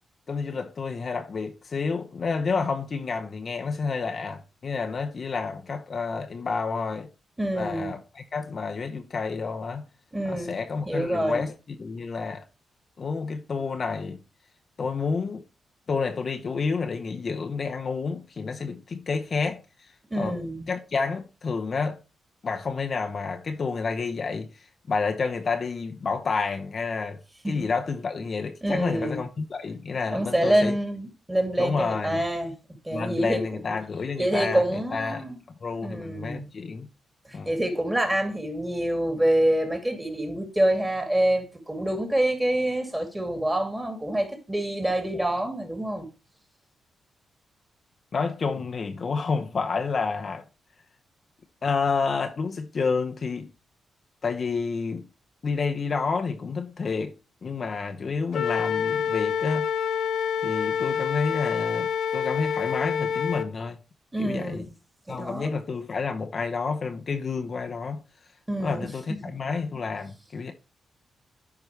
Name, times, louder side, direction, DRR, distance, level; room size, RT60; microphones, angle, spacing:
voice 1, 0.3-7.1 7.5-9.9 10.2-12.4 13.0-14.2 14.8-15.4 15.9-20.4 20.7-22.0 22.4-27.2 27.4-30.8 31.6-32.2 32.9-35.2 35.6-36.9 37.3-37.5 48.1-50.4 51.6-53.5 54.2-55.1 55.4-57.1 57.4-59.7 60.4-63.8 64.2-64.6 65.1-68.0 68.6-70.5, left 4 dB, 50° left, 0.8 m, -29 dB
voice 2, 7.4-7.9 10.1-10.5 10.9-11.5 20.1-20.7 27.4-27.7 28.6-29.2 30.1-32.5 32.8-33.6 34.2-35.4 35.8-36.5 37.3-46.1 64.1-64.7 65.1-65.5 68.5-69.2, right 1 dB, 15° right, 2.7 m, -26 dB
Wind instrument woodwind instrument, 58.3-63.5, left 7 dB, 80° left, 0.5 m, -27 dB
10.5 x 4.8 x 3.2 m
cardioid pair, 75°, 0 cm